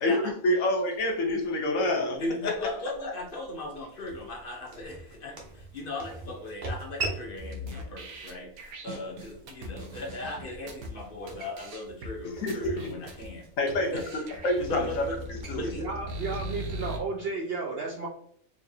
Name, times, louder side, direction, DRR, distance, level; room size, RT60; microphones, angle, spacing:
voice 1, 0.0-2.5 12.4-12.9 13.6-13.9 14.4-15.0 15.3-15.7, left 1 dB, 70° left, 1 dB, 1.2 m, -27 dB
sound 1, 0.9-17.0, right 2 dB, 40° right, 0.9 m, -43 dB
voice 2, 2.2-13.5 13.9-15.2 15.5-15.8, left 1 dB, 50° left, 0 dB, 0.7 m, -38 dB
sound 2, 7.4-10.9 11.3-11.4 11.6-12.1 12.5-13.3 13.7-13.8 14.0-17.0, equal, 90° right, 1.2 m, -39 dB
voice 3, 15.8-18.1, right 3 dB, 65° right, 0 dB, 0.6 m, -33 dB
4.6 x 2.5 x 2.6 m, 0.64 s
omnidirectional pair, 1.5 m